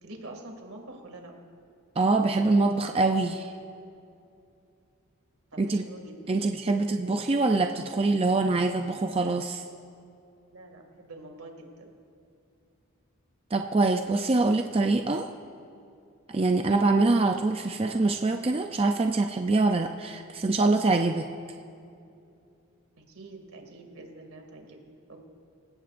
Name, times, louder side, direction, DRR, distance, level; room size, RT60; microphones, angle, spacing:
voice 1, 0.0-1.3 5.5-6.4 6.9-7.1 10.5-11.9 23.0-25.3, right 2 dB, 80° right, 2 dB, 2.3 m, -46 dB
voice 2, 2.0-3.5 5.6-5.8 6.3-9.6 13.5-15.3 16.3-21.3, right 3 dB, 25° right, 5 dB, 0.4 m, -24 dB
26.0 x 16.0 x 2.6 m, 2.5 s
head